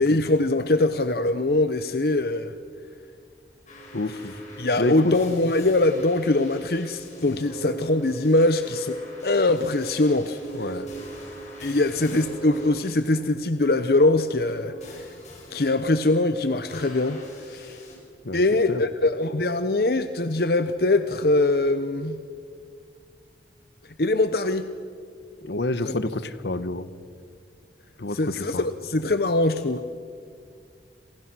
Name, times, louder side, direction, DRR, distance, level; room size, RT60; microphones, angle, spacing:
voice 1, 0.0-2.5 4.6-9.0 9.2-10.7 11.6-15.1 15.5-17.8 18.3-22.2 24.0-24.6 25.9-26.0 28.1-29.8, left 2 dB, 60° left, 10 dB, 0.9 m, -22 dB
sound 1, 3.7-13.3 14.1-15.7 16.6-18.0, right 1 dB, 40° left, 6.9 m, -41 dB
voice 2, 3.9-4.3 4.8-5.1 10.5-10.9 18.2-18.4 18.7-18.8 25.4-26.9 28.0-28.6, left 2 dB, 80° left, 13 dB, 1.3 m, -28 dB
28.5 x 27.5 x 6.3 m, 2.1 s
head